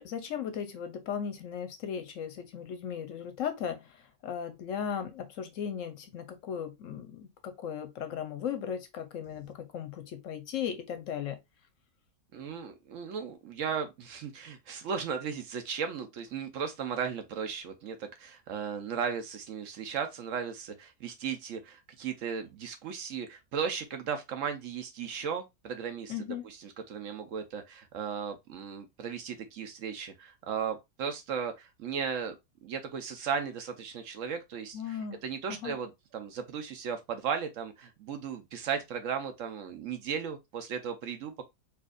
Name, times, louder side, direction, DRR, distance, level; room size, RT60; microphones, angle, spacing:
voice 1, 0.0-11.4 26.1-26.4 34.7-35.2 35.5-35.8, left 8 dB, 65° left, 0.9 m, -37 dB
voice 2, 12.3-32.4 32.6-41.5, right 6 dB, 65° right, 0.9 m, -36 dB
4.5 x 2.5 x 2.3 m
omnidirectional pair, 1.6 m